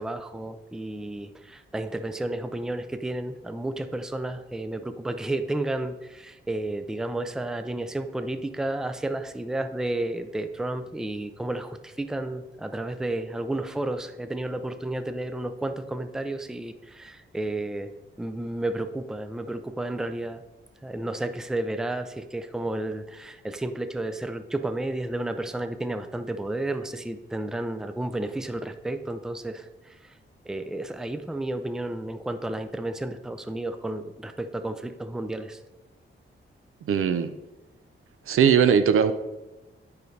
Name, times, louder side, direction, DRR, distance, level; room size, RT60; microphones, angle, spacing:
voice 1, 0.0-17.9 18.2-20.4 20.8-30.1 30.5-35.6, right 1 dB, 5° right, 0.4 m, -32 dB
voice 2, 36.9-37.3 38.3-39.1, right 7 dB, 80° right, 0.5 m, -19 dB
9.3 x 5.2 x 3.2 m
wide cardioid pair, 115°, 21 cm